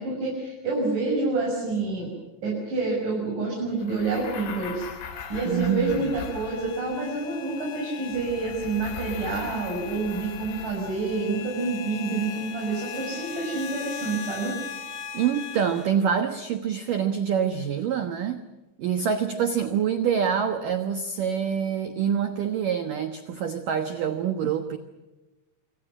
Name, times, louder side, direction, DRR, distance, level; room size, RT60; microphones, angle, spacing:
voice 1, 0.0-2.1 2.4-4.9 5.3-14.6, right 3 dB, 40° right, -3 dB, 7.8 m, -28 dB
sound 1, 3.8-7.0 8.1-11.3, left 6 dB, 85° left, 5.8 m, -40 dB
sound 2, 5.1-15.9, left 7 dB, 40° left, 2.6 m, -40 dB
voice 2, 5.5-6.1 15.1-18.4 18.8-24.8, right 8 dB, 80° right, 7 dB, 1.9 m, -26 dB
28.0 x 26.0 x 6.2 m, 1.1 s
omnidirectional pair, 5.9 m